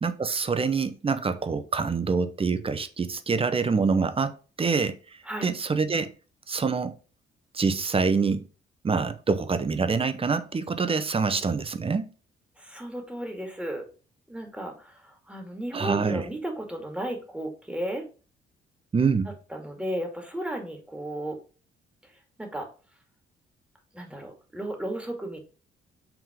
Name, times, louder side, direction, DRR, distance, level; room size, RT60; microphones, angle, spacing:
voice 1, 0.0-5.0 5.4-6.1 6.5-6.9 7.5-8.4 8.8-12.1 15.7-16.2 18.9-19.3, right 5 dB, 30° right, 0.8 m, -26 dB
voice 2, 12.6-13.8 14.3-18.0 19.5-21.4 22.4-22.7 23.9-25.4, right 1 dB, 5° right, 2.3 m, -34 dB
6.1 x 3.7 x 5.1 m
cardioid pair, 90°, 20 cm